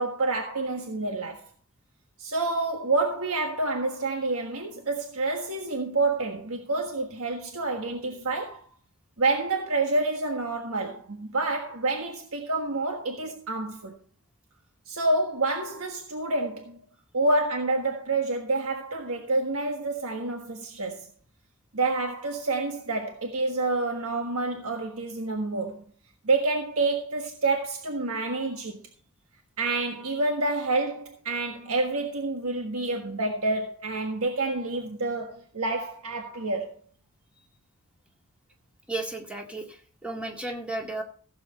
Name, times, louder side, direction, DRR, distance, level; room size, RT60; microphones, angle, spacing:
voice 1, 0.0-1.4 2.2-8.6 9.2-13.9 14.9-16.8 17.1-21.1 21.7-25.7 26.2-28.8 29.6-36.7, right 2 dB, 80° right, 1.5 m, -28 dB
voice 2, 38.9-41.0, right 2 dB, 5° right, 1.9 m, -34 dB
15.5 x 7.8 x 4.2 m
head